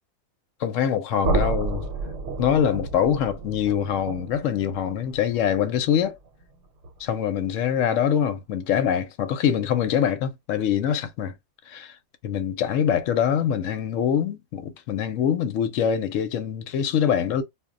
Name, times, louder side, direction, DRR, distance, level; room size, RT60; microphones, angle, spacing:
voice 1, 0.6-1.8 2.4-6.2 7.0-11.3 11.7-11.9 12.2-17.4, left 9 dB, 75° left, 0.9 m, -24 dB
sound 1, 1.2-7.1, right 3 dB, 70° right, 1.0 m, -31 dB
2.3 x 2.1 x 3.7 m
omnidirectional pair, 1.4 m